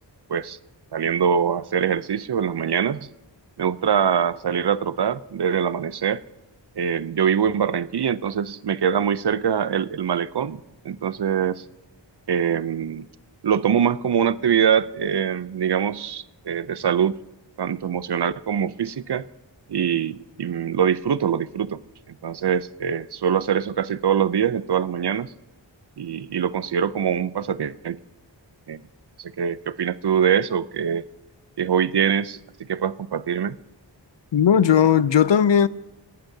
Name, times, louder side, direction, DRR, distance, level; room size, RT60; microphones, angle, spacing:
voice 1, 0.9-3.1 3.6-6.2 6.8-10.6 10.8-11.6 12.3-13.1 13.4-17.2 17.6-19.3 19.7-21.8 22.2-25.3 26.0-28.0 28.7-28.8 29.2-31.0 31.6-32.4 32.7-33.6, right 8 dB, 60° right, 0.6 m, -23 dB
voice 2, 34.3-35.7, left 8 dB, 70° left, 0.6 m, -17 dB
18.0 x 11.5 x 2.7 m
wide cardioid pair, 45°, 45 cm